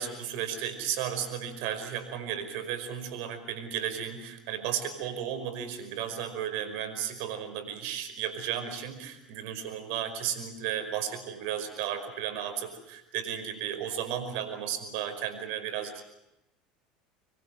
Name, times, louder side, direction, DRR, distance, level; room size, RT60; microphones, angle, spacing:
voice 1, 0.0-16.0, right 9 dB, 65° right, 8 dB, 5.3 m, -34 dB
26.5 x 22.5 x 7.7 m, 0.88 s
hypercardioid pair, 80°, 4 cm